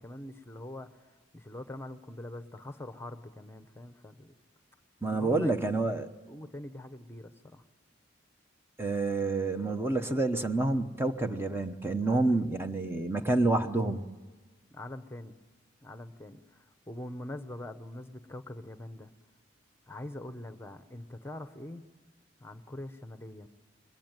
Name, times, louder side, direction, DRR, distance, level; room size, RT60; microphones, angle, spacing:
voice 1, 0.0-4.3 5.1-5.8 6.3-7.6 12.0-12.1 14.7-15.4 15.8-19.1 19.9-21.8 22.4-23.5, left 1 dB, 15° left, 10 dB, 1.0 m, -43 dB
voice 2, 5.0-6.1 8.8-14.0, right 2 dB, 15° right, 7 dB, 1.0 m, -28 dB
28.0 x 22.5 x 9.1 m, 1.3 s
head